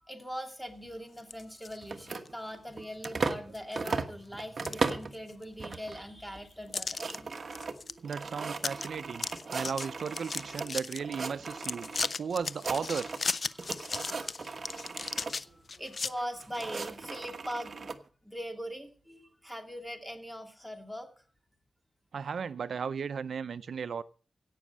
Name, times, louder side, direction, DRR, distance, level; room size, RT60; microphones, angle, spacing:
voice 1, 0.0-7.3 13.5-13.6 15.2-17.9 18.2-21.1, equal, 5° left, 2.5 m, -41 dB
sound 1, 1.2-1.8 2.2-2.3 3.0-3.1 3.5-4.0 4.4-5.4 5.7-5.8 6.7-7.2 7.5-7.9 8.2-8.3 8.6-8.9 9.1-11.0 11.5-16.1, left 4 dB, 45° left, 0.6 m, -36 dB
sound 2, 1.8-3.5 3.7-5.1 5.6-6.0 6.4-6.5 6.7-10.7 11.0-12.1 12.4-13.3 13.6-15.3 16.1-18.0, right 4 dB, 50° right, 1.2 m, -37 dB
voice 2, 8.0-11.9 12.2-13.1 22.1-24.0, right 6 dB, 75° right, 0.5 m, -35 dB
17.0 x 6.4 x 8.4 m
wide cardioid pair, 115°, 0 cm